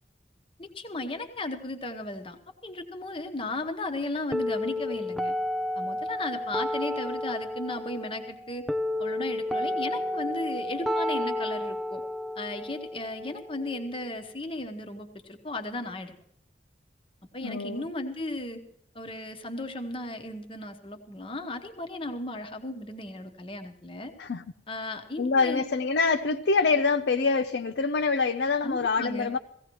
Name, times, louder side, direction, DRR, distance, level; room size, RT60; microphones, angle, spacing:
voice 1, 0.6-2.4 2.6-5.3 5.8-8.7 9.0-12.0 12.4-16.1 17.3-18.6 18.9-24.1 24.7-25.7 28.6-29.3, left 2 dB, 30° left, 1.1 m, -35 dB
sound 1, 4.3-14.3, left 1 dB, ahead, 0.4 m, -32 dB
voice 2, 17.4-17.9 24.2-24.4 25.2-29.4, left 4 dB, 75° left, 0.5 m, -25 dB
17.5 x 15.5 x 3.1 m
head